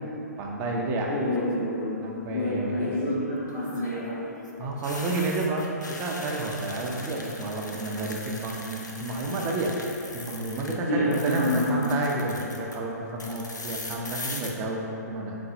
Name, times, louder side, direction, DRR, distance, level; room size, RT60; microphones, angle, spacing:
voice 1, 0.4-1.1 2.0-2.9 4.6-15.4, right 2 dB, 20° right, -1 dB, 0.5 m, -30 dB
sound 1, 1.1-1.6 3.5-10.8 11.0-12.8 13.2-14.5, left 2 dB, 85° left, 0.5 m, -40 dB
voice 2, 1.1-2.0 2.3-4.1 10.9-11.8, left 1 dB, 65° left, -12 dB, 1.4 m, -27 dB
4.1 x 3.9 x 2.6 m, 2.8 s
figure-of-eight pair, 125°, 10 cm